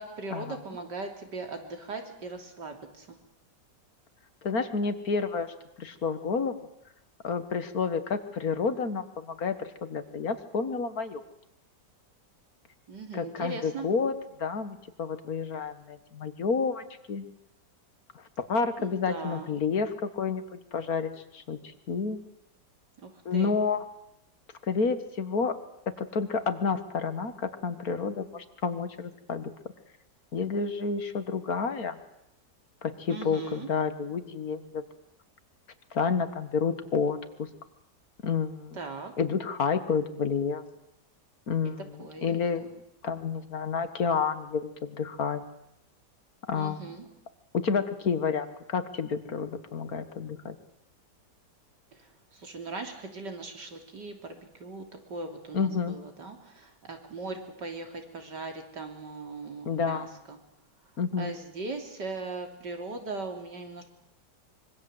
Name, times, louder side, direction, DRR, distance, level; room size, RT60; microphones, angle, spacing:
voice 1, 0.0-3.2 12.9-13.9 18.8-19.5 23.0-23.6 33.1-33.7 38.7-39.1 42.0-42.8 46.5-47.1 51.9-60.4 61.2-63.8, right 3 dB, 80° right, 4 dB, 3.7 m, -39 dB
voice 2, 4.4-6.7 7.2-11.2 13.1-14.1 14.4-17.3 18.4-20.4 20.7-22.2 23.3-23.8 24.6-25.6 26.0-29.5 30.3-32.0 32.8-34.8 35.9-37.5 38.2-38.8 39.2-40.6 41.5-42.7 43.0-45.4 46.5-46.8 47.5-50.6 55.5-56.0 59.7-60.1 61.0-61.3, left 5 dB, 55° left, 11 dB, 2.0 m, -30 dB
25.0 x 23.5 x 8.0 m, 0.82 s
omnidirectional pair, 1.8 m